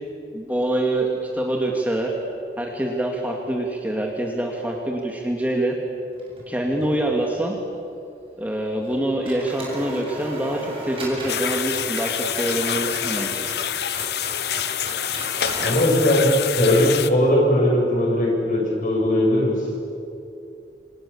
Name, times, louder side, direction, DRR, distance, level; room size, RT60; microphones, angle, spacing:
voice 1, 0.3-2.1 2.6-5.8 6.5-7.6 8.4-13.5, right 1 dB, 10° right, 0 dB, 2.3 m, -25 dB
sound 1, 6.1-7.0 7.2-7.3 8.8-9.0 9.2-15.9, right 1 dB, 30° right, 7.2 m, -36 dB
sound 2, 11.3-17.1, left 9 dB, 70° left, 0.9 m, -27 dB
voice 2, 15.6-16.3 16.6-19.6, left 1 dB, 45° left, -1 dB, 7.8 m, -19 dB
28.5 x 27.0 x 7.3 m, 2.6 s
head